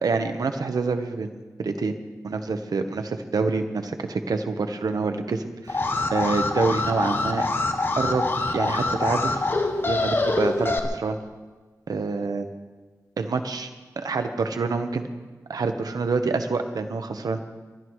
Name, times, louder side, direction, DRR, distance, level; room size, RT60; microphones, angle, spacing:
voice 1, 0.0-1.3 1.6-2.0 2.2-7.5 8.0-8.3 8.5-9.4 9.9-11.2 11.9-12.5 13.2-13.7 14.0-15.0 15.5-17.4, right 4 dB, 75° right, 7 dB, 1.3 m, -26 dB
Alarm, 5.7-10.8, left 3 dB, 35° left, 1.3 m, -25 dB
23.0 x 11.0 x 4.8 m, 1.4 s
wide cardioid pair, 130°, 7 cm